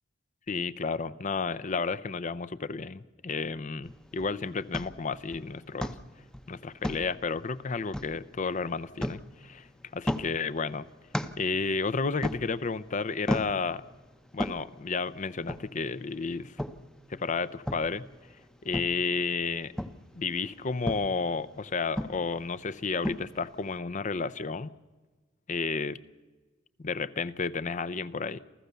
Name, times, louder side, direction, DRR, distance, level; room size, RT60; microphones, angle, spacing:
voice 1, 0.5-6.0 6.5-9.7 9.9-10.9 11.4-13.8 14.3-16.6 17.1-18.0 18.6-19.7 20.1-24.7 25.5-26.0 26.8-28.4, left 4 dB, 40° left, 0.6 m, -32 dB
sound 1, 3.8-23.8, left 1 dB, 5° left, 0.7 m, -39 dB
28.0 x 14.5 x 6.9 m
head